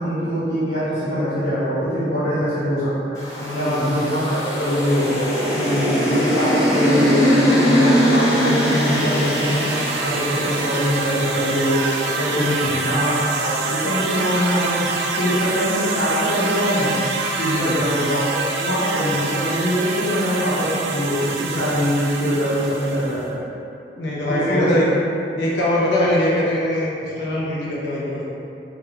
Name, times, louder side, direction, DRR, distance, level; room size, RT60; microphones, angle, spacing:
voice 1, 0.0-3.2 3.5-5.2 5.6-14.9 15.2-16.9 17.4-23.4 24.3-24.8, equal, 50° left, -16 dB, 0.8 m, -23 dB
sound 1, 3.2-13.5, equal, 20° left, 0.8 m, -22 dB
voice 2, 3.4-3.9 5.1-5.3 5.5-6.0 8.9-9.4 12.4-12.8 17.5-17.8 24.0-24.9 25.4-28.2, left 1 dB, 80° left, -6 dB, 0.6 m, -23 dB
sound 2, 8.2-23.3, right 4 dB, 75° right, 0.3 m, -27 dB
2.8 x 2.4 x 3.3 m, 2.7 s
head